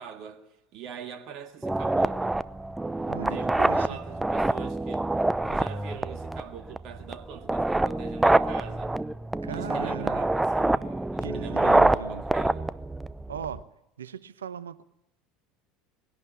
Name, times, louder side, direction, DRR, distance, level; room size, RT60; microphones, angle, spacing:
voice 1, 0.0-2.4 3.1-5.1 5.4-9.0 9.5-12.7, right 8 dB, 50° right, 1.9 m, -43 dB
sound 1, 1.6-13.6, right 2 dB, 10° right, 0.7 m, -26 dB
voice 2, 3.1-4.0 9.4-10.2 11.2-12.2 13.3-13.6 14.0-14.8, right 8 dB, 80° right, 0.9 m, -38 dB
22.0 x 17.5 x 8.3 m
figure-of-eight pair, 70°, 0 cm